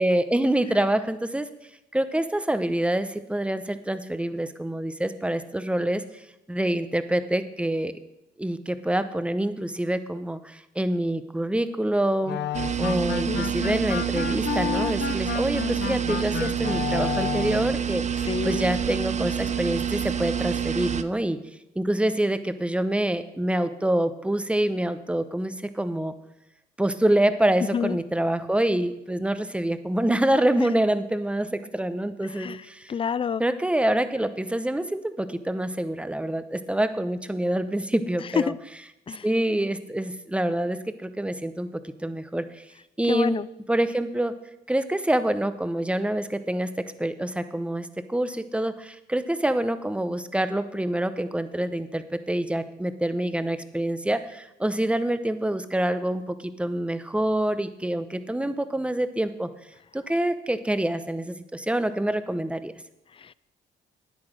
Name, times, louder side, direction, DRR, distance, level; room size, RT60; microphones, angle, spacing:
voice 1, 0.0-1.5 1.9-7.9 8.4-12.4 12.8-21.4 21.8-26.1 26.8-32.9 33.4-38.5 39.2-42.6 43.0-44.4 44.7-59.5 59.9-62.7, right 1 dB, 5° right, 11 dB, 0.8 m, -26 dB
sound 1, 12.2-17.8, left 10 dB, 60° left, 0.7 m, -31 dB
sound 2, 12.5-21.0, right 8 dB, 35° right, 0.6 m, -28 dB
voice 2, 18.3-18.6 27.6-28.0 30.6-30.7 32.3-33.4 38.4-38.6 39.1-39.3 43.1-43.5 63.2-63.3, left 7 dB, 25° left, 20 dB, 0.4 m, -28 dB
9.5 x 8.8 x 6.3 m, 0.88 s
cardioid pair, 90°, 20 cm